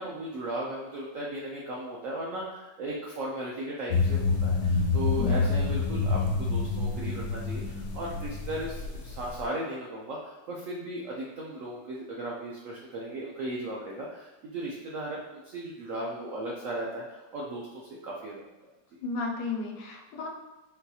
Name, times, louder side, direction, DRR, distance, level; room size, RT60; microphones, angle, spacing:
voice 1, 0.0-18.4, right 1 dB, 75° right, -3 dB, 0.7 m, -36 dB
sound 1, 3.9-9.4, left 4 dB, 70° left, 1.1 m, -28 dB
voice 2, 5.2-5.6 19.0-20.3, left 4 dB, 90° left, 1 dB, 1.3 m, -34 dB
4.1 x 2.3 x 2.7 m, 1.1 s
omnidirectional pair, 1.9 m